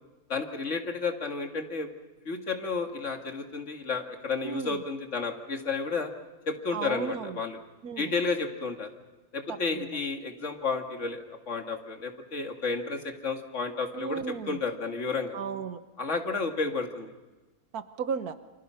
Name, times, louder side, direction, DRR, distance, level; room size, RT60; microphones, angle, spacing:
voice 1, 0.3-1.9 2.3-6.1 6.5-7.6 8.0-8.9 9.3-15.4 16.0-17.1, left 4 dB, 50° left, 4 dB, 2.4 m, -32 dB
voice 2, 4.4-4.8 6.7-7.4 7.8-8.1 9.5-9.9 13.9-14.6 15.3-15.8 17.7-18.3, right 6 dB, 75° right, 10 dB, 1.5 m, -34 dB
28.5 x 25.5 x 5.8 m, 1.1 s
omnidirectional pair, 1.6 m